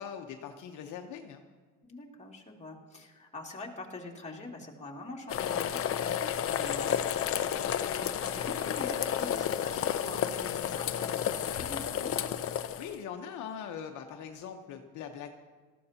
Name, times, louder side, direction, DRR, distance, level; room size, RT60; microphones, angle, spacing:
voice 1, 0.0-1.4 12.8-15.3, left 8 dB, 65° left, 4 dB, 1.0 m, -41 dB
voice 2, 1.8-12.1, left 2 dB, 20° left, -2 dB, 2.5 m, -44 dB
sound 1, 5.3-13.0, left 9 dB, 45° left, 0.7 m, -31 dB
19.0 x 14.0 x 2.9 m, 1.4 s
cardioid pair, 105°, 33 cm